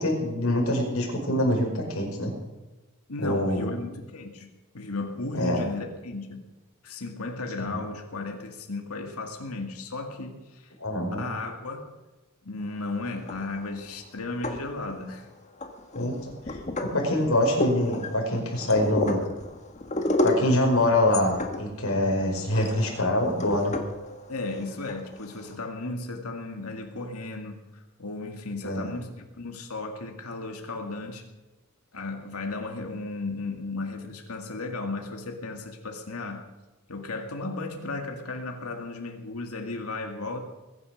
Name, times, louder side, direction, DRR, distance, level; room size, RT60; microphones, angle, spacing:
voice 1, 0.0-2.3 3.2-3.8 5.3-5.6 7.6-7.8 10.8-11.2 15.9-16.2 16.5-16.6 16.9-19.2 20.2-23.8 28.6-28.9, left 1 dB, 70° left, 0 dB, 5.2 m, -25 dB
voice 2, 3.1-4.5 4.7-6.4 6.8-10.7 11.1-11.9 12.4-15.3 24.3-31.2 31.9-36.5 36.9-40.4, left 3 dB, 85° left, 3 dB, 2.1 m, -35 dB
sound 1, 13.1-13.8 14.2-15.1 15.6-25.5, left 2 dB, 35° left, 1.6 m, -32 dB
21.5 x 10.0 x 6.5 m, 1.1 s
head